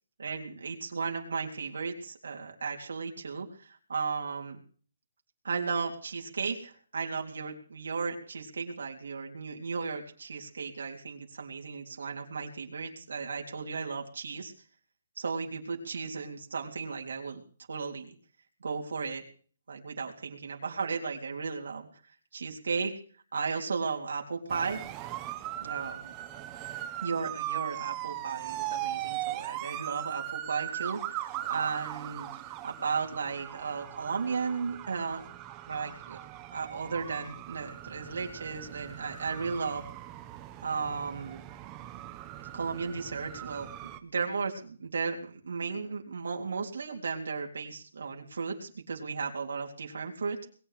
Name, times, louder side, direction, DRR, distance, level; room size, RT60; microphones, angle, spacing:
voice 1, 0.2-4.6 5.4-14.5 15.2-17.4 17.7-18.2 18.6-19.2 19.7-21.9 22.3-22.9 23.3-24.8 25.6-26.1 27.0-35.2 35.7-36.2 36.5-39.8 40.6-41.4 42.5-50.4, right 5 dB, 80° right, 1 dB, 3.8 m, -35 dB
sound 1, 24.5-44.0, right 13 dB, 15° right, 1.1 m, -39 dB
21.5 x 8.3 x 6.8 m, 0.44 s
hypercardioid pair, 170°, 0 cm